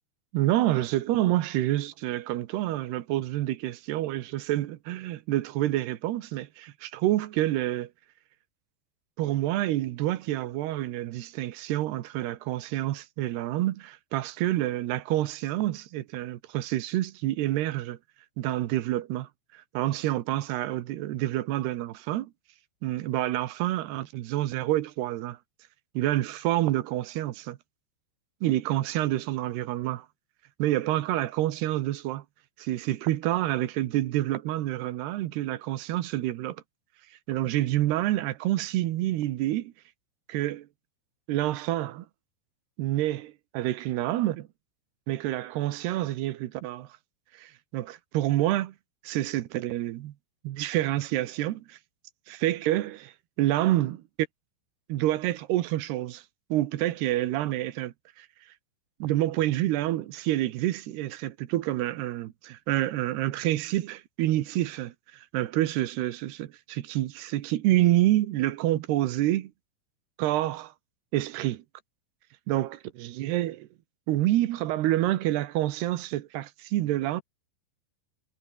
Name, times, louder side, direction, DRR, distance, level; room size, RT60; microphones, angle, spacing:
voice 1, 0.3-7.9 9.2-18.0 18.4-22.3 22.8-25.4 25.9-27.6 28.4-30.1 30.6-32.2 32.6-36.6 37.3-39.7 40.3-40.7 41.3-42.1 42.8-44.5 45.1-46.9 47.3-48.7 49.0-50.1 50.4-51.8 52.3-54.0 54.9-56.2 56.5-58.3 59.0-69.5 70.2-70.7 71.1-71.6 72.5-73.6 74.1-77.2, right 15 dB, 75° right, 3.0 m, -28 dB
omnidirectional pair, 5.3 m